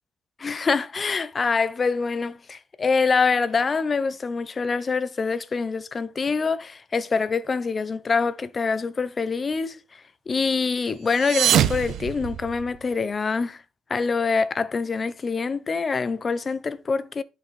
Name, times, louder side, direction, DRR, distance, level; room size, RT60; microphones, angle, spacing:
voice 1, 0.4-9.8 10.3-13.6 13.9-17.2, left 4 dB, 35° left, 0.9 m, -25 dB
sound 1, 11.1-12.9, right 10 dB, 80° right, 0.9 m, -24 dB
11.0 x 6.3 x 4.3 m
cardioid pair, 90°, 0 cm